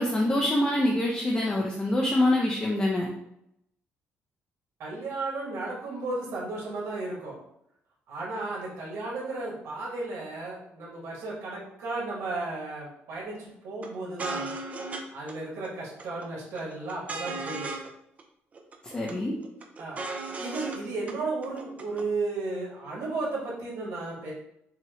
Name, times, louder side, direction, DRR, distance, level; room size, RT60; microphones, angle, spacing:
voice 1, 0.0-3.1 18.9-19.3, left 1 dB, 20° left, -2 dB, 0.6 m, -25 dB
voice 2, 4.8-7.4 8.1-14.5 15.1-17.7 19.8-20.0 20.4-24.3, right 3 dB, 80° right, -4 dB, 1.5 m, -34 dB
sound 1, 13.8-13.9 14.2-15.0 15.3-15.4 15.6-16.3 16.6-17.9 18.2-18.3 18.5-19.1 19.4-20.8 21.1-21.2 21.4-22.0, right 3 dB, 30° right, 0.5 m, -36 dB
5.6 x 2.2 x 3.0 m, 0.77 s
cardioid pair, 135°, 5 cm